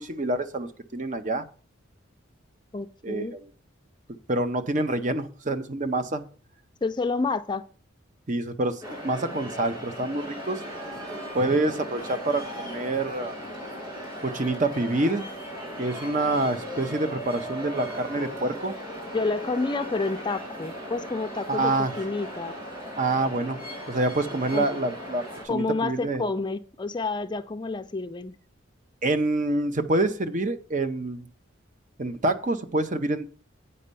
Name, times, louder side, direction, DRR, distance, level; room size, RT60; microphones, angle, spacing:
voice 1, 0.0-1.4 3.0-3.5 4.3-6.2 8.3-10.6 11.3-13.5 14.2-15.2 15.8-18.7 21.5-21.9 23.0-23.6 23.9-26.2 29.0-31.3 32.0-33.3, right 2 dB, 40° right, 0.8 m, -27 dB
voice 2, 2.7-3.3 6.8-7.6 19.1-22.6 24.5-24.7 25.5-28.3, left 3 dB, 20° left, 0.5 m, -29 dB
sound 1, 8.8-25.4, equal, 25° right, 4.7 m, -37 dB
8.6 x 5.4 x 6.8 m
head